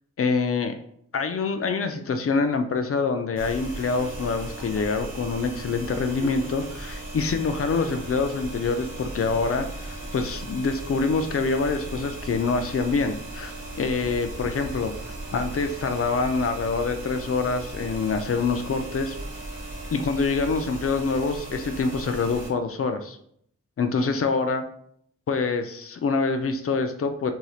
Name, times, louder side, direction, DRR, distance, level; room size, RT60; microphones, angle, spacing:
voice 1, 0.2-0.8 1.1-14.9 15.3-19.2 19.9-23.2 23.8-24.6 25.3-27.3, left 4 dB, 50° left, 7 dB, 0.4 m, -26 dB
sound 1, 3.4-22.5, right 2 dB, 45° right, 1.2 m, -37 dB
Laughter, 4.0-5.0 6.1-6.8 7.7-8.2 9.3-10.1, left 2 dB, 5° left, 0.7 m, -44 dB
3.0 x 2.7 x 2.3 m, 0.66 s
cardioid pair, 50°, 30 cm